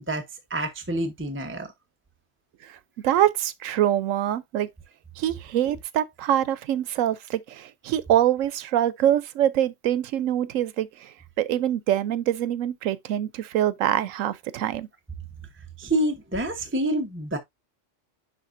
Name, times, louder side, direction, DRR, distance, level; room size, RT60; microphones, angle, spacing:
voice 1, 0.1-1.7 15.8-17.4, right 1 dB, 10° right, 0.7 m, -27 dB
voice 2, 3.0-4.7 5.2-11.1 11.4-14.9, right 11 dB, 80° right, 1.0 m, -24 dB
10.5 x 3.8 x 2.6 m
omnidirectional pair, 1.3 m